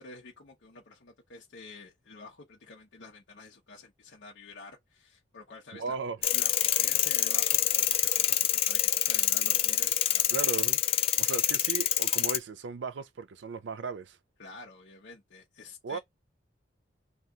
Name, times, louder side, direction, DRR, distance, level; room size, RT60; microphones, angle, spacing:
voice 1, 0.0-6.0 6.3-10.4 11.2-11.5 14.4-16.0, left 3 dB, 90° left, 0.8 m, -49 dB
voice 2, 5.7-6.2 10.3-10.8 11.2-14.2 15.8-16.0, right 5 dB, 90° right, 0.4 m, -36 dB
sound 1, 6.2-12.4, left 11 dB, 35° left, 0.3 m, -26 dB
2.8 x 2.3 x 3.5 m
head